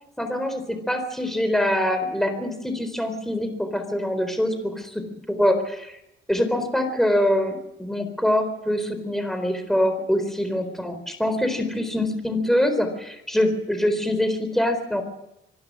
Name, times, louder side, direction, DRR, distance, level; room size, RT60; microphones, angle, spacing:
voice 1, 0.2-6.0 6.3-15.0, left 1 dB, ahead, 7 dB, 4.1 m, -24 dB
25.5 x 12.0 x 9.8 m, 0.88 s
cardioid pair, 90°, 20 cm